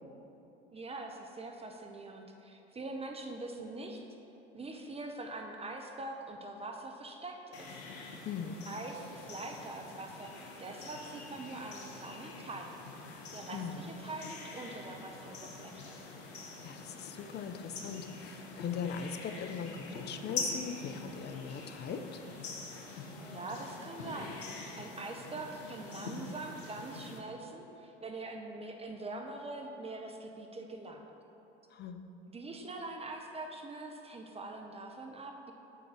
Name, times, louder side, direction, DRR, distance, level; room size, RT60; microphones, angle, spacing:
voice 1, 0.7-4.0 4.5-7.8 8.7-12.7 13.3-16.0 23.2-31.1 32.3-35.5, right 2 dB, 20° right, 3 dB, 0.7 m, -43 dB
sound 1, 7.5-27.2, left 3 dB, 85° left, 1.0 m, -45 dB
voice 2, 8.2-8.6 13.5-13.8 16.6-22.2 31.7-32.0, left 6 dB, 35° left, 8 dB, 0.6 m, -40 dB
7.6 x 3.9 x 6.1 m, 2.9 s
hypercardioid pair, 75°, 32 cm